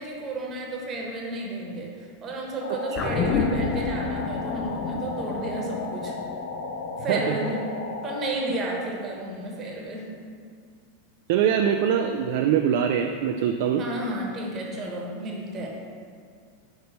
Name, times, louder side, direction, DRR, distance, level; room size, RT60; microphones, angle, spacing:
voice 1, 0.0-6.1 7.0-7.7 8.0-10.1 13.8-15.7, right 2 dB, 35° right, -1 dB, 1.1 m, -32 dB
sound 1, 2.6-8.3, left 3 dB, 85° left, 0.5 m, -34 dB
sound 2, 2.9-7.6 7.9-8.0, left 5 dB, 40° left, 0.5 m, -30 dB
voice 2, 7.1-7.4 11.3-13.8, right 8 dB, 60° right, 4 dB, 0.3 m, -23 dB
5.9 x 3.3 x 5.4 m, 2.1 s
hypercardioid pair, 100°, 0 cm